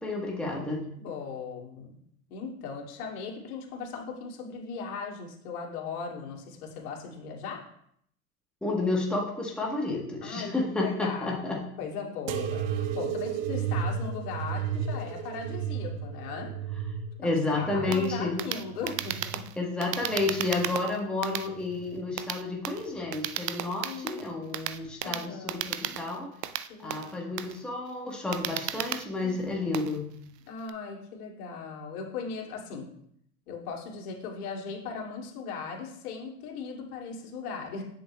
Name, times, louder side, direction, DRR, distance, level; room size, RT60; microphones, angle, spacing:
voice 1, 0.0-0.9 8.6-11.6 17.2-18.4 19.6-26.3 26.8-30.1, left 2 dB, ahead, -1 dB, 1.2 m, -31 dB
voice 2, 1.0-2.0 2.3-7.6 10.2-16.5 17.2-17.3 17.6-19.4 23.8-24.2 25.0-26.0 26.7-27.3 29.2-29.5 30.5-32.9 33.5-37.8, left 5 dB, 65° left, -1 dB, 2.5 m, -38 dB
sound 1, 12.3-19.5 20.0-20.8 21.5-22.1 23.0-23.2, right 7 dB, 50° right, 0.8 m, -34 dB
sound 2, 17.9-30.7, right 11 dB, 85° right, 0.7 m, -35 dB
10.5 x 6.6 x 2.3 m, 0.70 s
hypercardioid pair, 110°, 48 cm